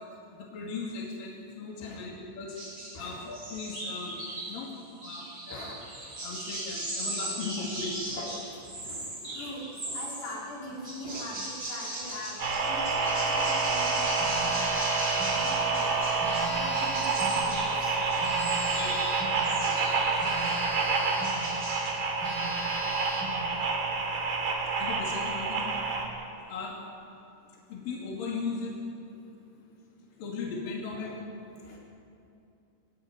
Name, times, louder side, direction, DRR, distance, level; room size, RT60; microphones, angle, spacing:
voice 1, 0.3-2.6 2.9-4.2 4.5-4.7 5.0-5.7 6.2-8.1 18.7-18.9 24.8-25.7 26.5-26.8 27.7-28.8 30.2-31.2, left 4 dB, 60° left, -2 dB, 4.0 m, -37 dB
Birds In The Tree's, 2.5-3.0 3.3-4.6 5.0-10.4 10.8-20.7 21.0-21.9, right 1 dB, 35° right, 7.9 m, -38 dB
voice 2, 2.9-3.3 5.5-5.9 7.6-7.7 8.1-17.7 19.7-20.7 22.1-22.2 24.2-24.6 25.3-25.6 30.9-31.1 31.6-31.8, left 1 dB, 75° left, -4 dB, 6.3 m, -43 dB
sound 1, 12.4-26.0, right 4 dB, 60° right, 4.5 m, -28 dB
Telephone, 14.2-15.4 16.2-17.4 18.2-19.4 20.2-21.4 21.8-21.9 22.2-23.4, equal, 30° left, 5.7 m, -39 dB
23.5 x 17.0 x 9.7 m, 2.7 s
omnidirectional pair, 4.8 m